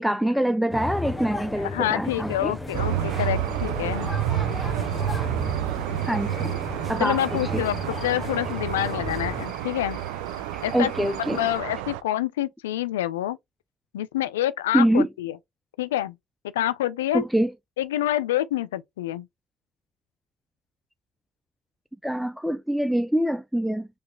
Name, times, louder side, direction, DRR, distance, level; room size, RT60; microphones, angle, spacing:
voice 1, 0.0-2.6 6.1-6.6 6.9-7.2 7.5-7.6 10.5-11.4 14.7-15.1 17.1-17.5 22.0-23.9, right 1 dB, ahead, 0.4 m, -24 dB
sound 1, 0.7-9.5, left 2 dB, 15° left, 1.1 m, -35 dB
voice 2, 1.6-4.1 7.0-10.0 10.6-13.4 13.9-15.4 15.8-16.1 16.5-17.2 17.8-19.3, left 13 dB, 90° left, 0.3 m, -27 dB
Cricket / Frog, 2.7-11.6, left 5 dB, 55° left, 1.5 m, -48 dB
sound 2, 2.7-12.0, right 12 dB, 80° right, 0.4 m, -29 dB
4.0 x 3.1 x 3.1 m
hypercardioid pair, 60°, 0 cm